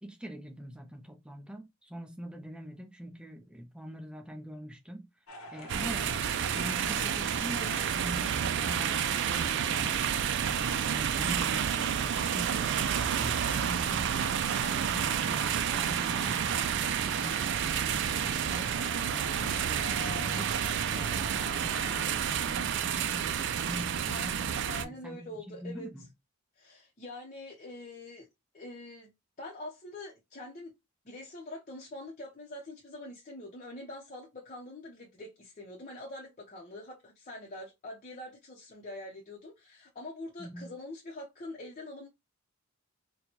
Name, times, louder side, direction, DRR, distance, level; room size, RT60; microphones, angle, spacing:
voice 1, 0.0-5.1 5.5-6.3 6.5-10.2 10.5-12.7 13.0-18.8 19.1-20.6 20.9-26.1 40.4-40.7, right 1 dB, 5° right, 0.6 m, -44 dB
sound 1, 5.3-22.9, left 2 dB, 80° left, 0.8 m, -46 dB
sound 2, 5.7-24.8, right 8 dB, 55° right, 0.4 m, -30 dB
voice 2, 24.7-25.9 26.6-28.3 28.5-29.1 29.4-30.7 31.0-42.1, left 2 dB, 35° left, 0.7 m, -44 dB
4.3 x 2.2 x 2.9 m
head